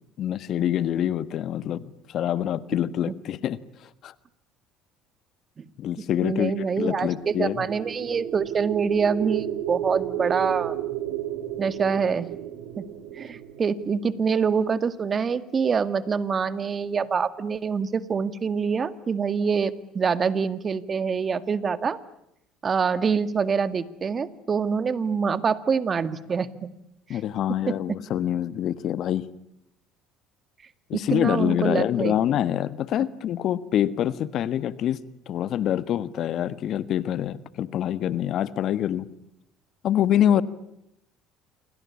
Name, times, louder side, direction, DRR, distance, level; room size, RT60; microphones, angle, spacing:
voice 1, 0.2-3.6 4.0-4.1 5.8-7.6 27.1-29.2 30.9-35.0 35.3-39.1 39.8-40.4, left 11 dB, 60° left, 16 dB, 1.4 m, -25 dB
voice 2, 6.2-10.7 11.6-12.3 12.8-12.9 13.2-22.0 22.6-26.7 27.1-27.2 30.9-32.1, right 6 dB, 35° right, 14 dB, 2.0 m, -25 dB
sound 1, 6.9-15.0, right 12 dB, 80° right, 3.2 m, -33 dB
28.0 x 24.5 x 8.5 m, 0.80 s
hypercardioid pair, 75°, 0 cm